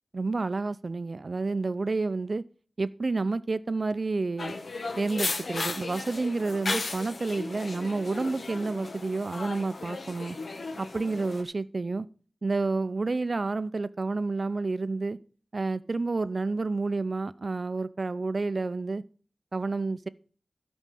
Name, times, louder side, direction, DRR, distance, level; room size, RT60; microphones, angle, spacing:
voice 1, 0.1-2.4 2.8-4.5 5.0-10.4 10.8-12.1 12.4-15.2 15.5-19.0 19.5-20.1, right 3 dB, 55° right, 0.6 m, -30 dB
sound 1, 4.4-11.4, left 3 dB, 75° left, 1.5 m, -35 dB
12.5 x 5.2 x 7.5 m
wide cardioid pair, 60°, 0 cm